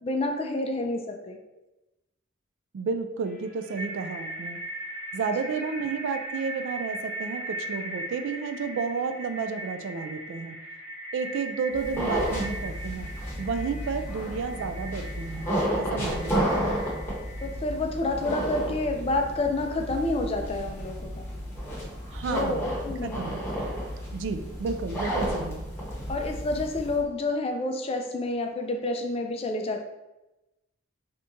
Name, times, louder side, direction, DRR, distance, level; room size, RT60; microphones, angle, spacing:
voice 1, 0.0-1.4 17.4-21.3 22.3-23.3 26.1-29.8, left 2 dB, 30° left, 4 dB, 0.3 m, -29 dB
voice 2, 2.7-4.6 5.1-10.6 11.1-13.1 13.4-15.5 15.8-16.8 22.1-22.6 23.0-23.4 24.1-25.6, right 5 dB, 65° right, 8 dB, 0.3 m, -32 dB
sound 1, 3.3-17.6, right 1 dB, 45° right, 1.1 m, -39 dB
sound 2, 11.7-27.0, equal, 10° left, 1.0 m, -32 dB
3.4 x 2.8 x 2.6 m, 0.99 s
head